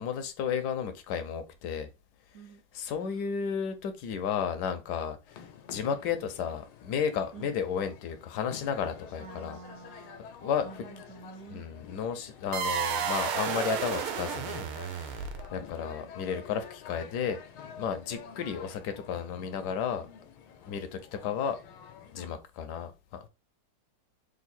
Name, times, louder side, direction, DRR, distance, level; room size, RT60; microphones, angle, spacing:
voice 1, 0.0-1.9 2.7-9.6 10.4-10.8 11.5-15.2 15.5-17.4 17.8-20.1 20.6-21.6 22.1-23.2, left 7 dB, 70° left, 1.0 m, -33 dB
voice 2, 2.3-3.1 7.3-7.6 9.2-10.2 10.6-11.7, right 4 dB, 65° right, 0.6 m, -48 dB
sound 1, 5.3-22.3, left 7 dB, 90° left, 1.5 m, -49 dB
sound 2, 12.5-15.7, right 8 dB, 85° right, 1.5 m, -32 dB
3.7 x 2.6 x 4.1 m
omnidirectional pair, 2.3 m